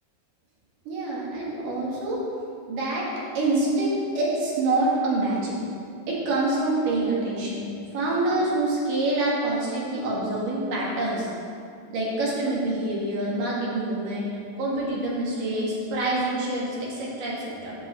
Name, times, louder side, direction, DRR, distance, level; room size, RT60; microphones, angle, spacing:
voice 1, 0.9-2.2 2.7-3.1 3.3-5.6 6.1-7.6 7.9-11.3 11.9-14.3 14.6-17.8, right 2 dB, 75° right, -5 dB, 3.5 m, -26 dB
8.3 x 5.4 x 7.2 m, 2.4 s
omnidirectional pair, 3.8 m